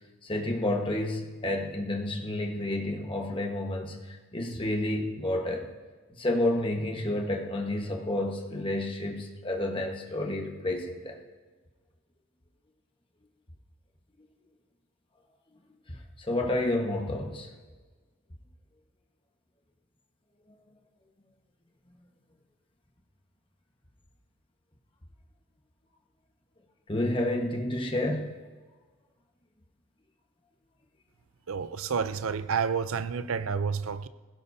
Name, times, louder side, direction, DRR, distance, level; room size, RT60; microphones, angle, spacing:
voice 1, 0.2-5.7 6.1-11.2 15.9-17.5 26.9-28.3, left 1 dB, 25° left, 1.4 m, -30 dB
voice 2, 31.5-34.1, right 6 dB, 70° right, 0.6 m, -30 dB
20.0 x 16.0 x 2.8 m
head